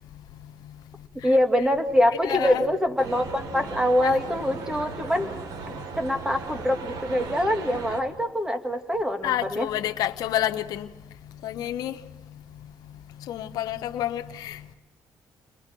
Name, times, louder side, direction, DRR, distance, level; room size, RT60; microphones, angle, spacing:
voice 1, 1.2-5.3 5.7-9.7, left 1 dB, 10° right, 2.5 m, -24 dB
voice 2, 2.3-2.6 4.0-4.2 9.2-10.9 11.4-11.9 13.3-14.6, left 12 dB, 75° left, 0.9 m, -28 dB
sound 1, 3.0-8.0, right 4 dB, 70° right, 2.3 m, -37 dB
30.0 x 22.0 x 4.6 m
cardioid pair, 85°, 7 cm